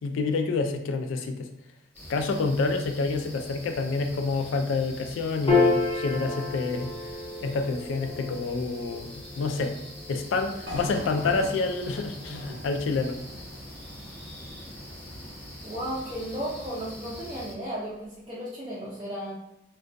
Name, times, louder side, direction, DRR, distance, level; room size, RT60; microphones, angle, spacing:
voice 1, 0.0-1.5 2.1-6.9 7.4-9.7 10.1-13.2, left 3 dB, 80° left, 6 dB, 0.3 m, -28 dB
sound 1, 1.9-17.5, equal, 5° left, 0.8 m, -44 dB
Piano, 5.5-12.1, left 3 dB, 25° left, 0.5 m, -30 dB
sound 2, 10.7-14.8, equal, 70° right, 0.6 m, -41 dB
voice 2, 15.6-19.3, equal, 25° right, -8 dB, 0.5 m, -34 dB
2.3 x 2.2 x 2.5 m, 0.85 s
head